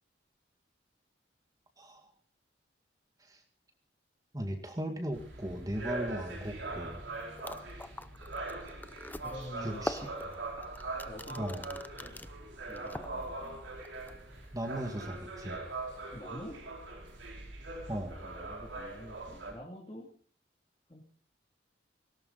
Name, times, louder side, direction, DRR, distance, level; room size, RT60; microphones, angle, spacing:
voice 1, 4.3-7.0 9.6-10.1 11.4-11.7 14.5-15.6 17.9-18.2, equal, 20° right, 4 dB, 2.2 m, -37 dB
sound 1, 5.1-19.5, right 2 dB, 85° right, 5.6 m, -42 dB
sound 2, 7.1-7.2 7.4-12.3 12.7-13.5 13.8-14.1, left 1 dB, 10° left, 0.6 m, -42 dB
voice 2, 9.2-9.9 11.0-12.2 12.7-13.7 16.1-16.6 17.7-20.1 20.9-21.0, equal, 30° left, -1 dB, 2.9 m, -47 dB
18.5 x 18.0 x 4.1 m, 0.44 s
head